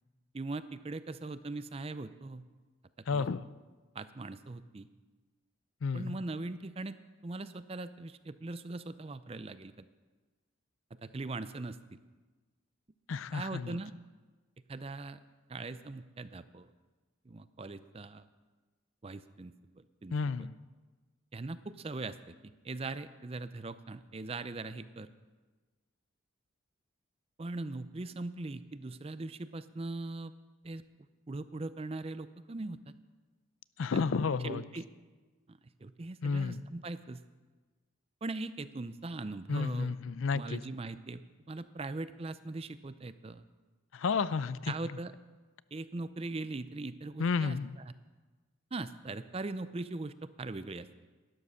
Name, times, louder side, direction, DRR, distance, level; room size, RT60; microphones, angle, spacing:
voice 1, 0.3-2.4 3.1-3.3 3.9-4.9 5.9-7.0 7.2-9.9 11.0-11.8 13.3-13.9 14.7-15.2 15.5-16.7 17.3-18.3 19.0-20.2 21.3-25.1 27.4-30.3 30.6-30.8 31.3-32.9 33.9-34.0 34.4-34.9 35.5-37.2 38.2-40.0 40.3-43.4 44.7-45.1 45.7-47.6 47.9-48.0 48.7-50.9, right 2 dB, 30° right, 13 dB, 0.5 m, -40 dB
voice 2, 3.1-3.5 5.8-6.2 13.1-13.8 20.1-20.5 33.8-34.6 36.2-36.6 39.5-40.6 43.9-44.7 47.2-47.8, left 5 dB, 80° left, 17 dB, 0.5 m, -32 dB
12.0 x 11.0 x 6.4 m, 1.3 s
head